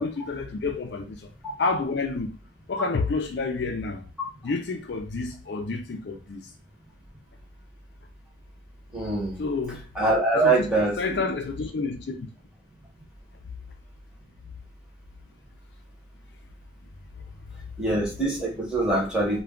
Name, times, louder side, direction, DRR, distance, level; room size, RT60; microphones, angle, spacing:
voice 1, 0.0-1.3 1.6-2.3 2.7-4.0 4.4-6.4 9.4-9.9 10.3-10.7 11.0-12.3, left 4 dB, 60° left, 0.4 m, -29 dB
voice 2, 8.9-9.4 9.9-11.2 17.8-19.4, right 2 dB, 5° right, 0.8 m, -24 dB
2.3 x 2.3 x 3.5 m
head